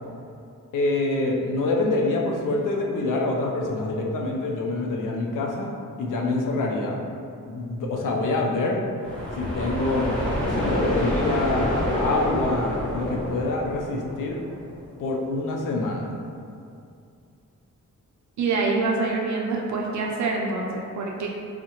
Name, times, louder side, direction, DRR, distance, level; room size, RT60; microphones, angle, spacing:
voice 1, 0.7-5.7 6.0-7.0 7.5-8.8 9.4-14.4 15.0-16.1, left 2 dB, 85° left, 0 dB, 0.5 m, -26 dB
sound 1, 9.0-14.8, left 1 dB, 5° left, 0.9 m, -27 dB
voice 2, 18.4-21.3, right 3 dB, 65° right, -1 dB, 0.5 m, -25 dB
3.6 x 2.1 x 2.8 m, 2.4 s
wide cardioid pair, 125°, 31 cm